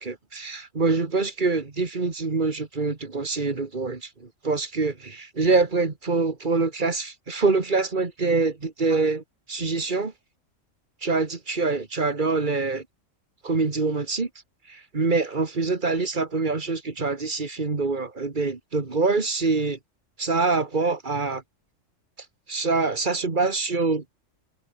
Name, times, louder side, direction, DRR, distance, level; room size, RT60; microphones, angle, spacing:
voice 1, 0.0-9.2 9.5-10.1 11.0-12.8 13.4-14.3 14.7-19.8 20.2-21.4 22.5-24.0, right 3 dB, 40° right, 2.0 m, -25 dB
omnidirectional pair, 1.3 m